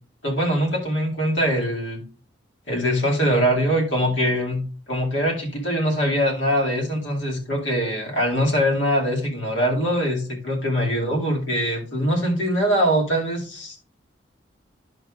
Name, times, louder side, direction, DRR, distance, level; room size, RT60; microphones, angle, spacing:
voice 1, 0.2-2.0 2.7-13.8, equal, 80° left, -1 dB, 2.3 m, -23 dB
11.0 x 6.6 x 2.4 m, 0.38 s
head